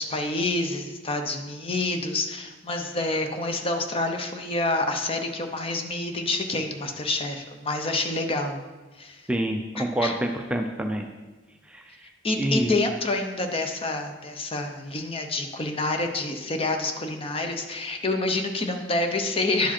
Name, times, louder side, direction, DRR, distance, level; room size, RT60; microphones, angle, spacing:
voice 1, 0.0-8.6 9.0-9.3 9.8-10.2 12.2-19.7, left 2 dB, 30° left, 5 dB, 0.7 m, -28 dB
voice 2, 9.3-11.1 11.7-11.8 12.4-12.8, right 1 dB, 5° right, 3 dB, 0.4 m, -27 dB
10.5 x 4.9 x 4.3 m, 1.2 s
head